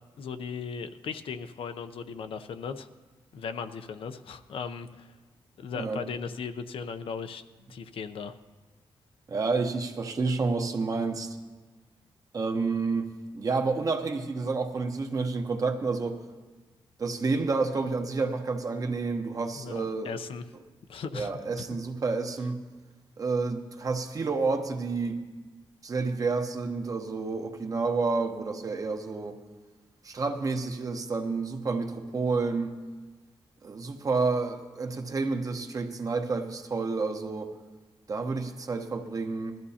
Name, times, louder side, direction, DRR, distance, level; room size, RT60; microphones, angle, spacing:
voice 1, 0.2-2.9 3.3-5.1 5.6-7.4 7.7-8.3 19.5-20.4 20.9-21.3 21.6-21.7, left 6 dB, 80° left, 9 dB, 0.6 m, -37 dB
voice 2, 9.3-11.4 12.3-13.1 13.3-16.2 17.0-20.2 21.1-22.6 23.2-25.2 25.8-29.4 30.0-32.7 33.6-37.5 38.1-39.6, right 4 dB, 40° right, 5 dB, 0.9 m, -29 dB
20.0 x 13.5 x 2.8 m, 1.3 s
wide cardioid pair, 150°, 9 cm